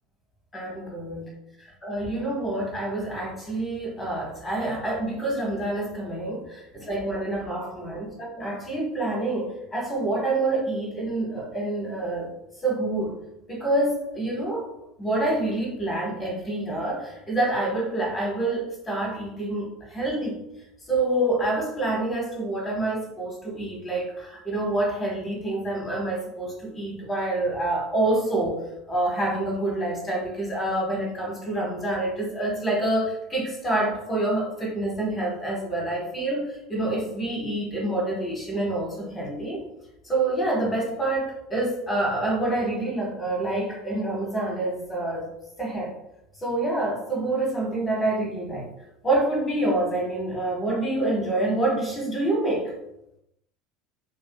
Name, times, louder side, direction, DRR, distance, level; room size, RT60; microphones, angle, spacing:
voice 1, 0.5-1.3 1.8-12.3 12.6-13.1 13.5-14.6 15.0-20.4 20.9-28.6 28.9-39.6 40.0-45.3 45.6-45.9 46.4-48.7 49.0-52.7, right 2 dB, 25° left, -1 dB, 1.1 m, -27 dB
2.6 x 2.5 x 2.2 m, 0.83 s
hypercardioid pair, 75°, 0 cm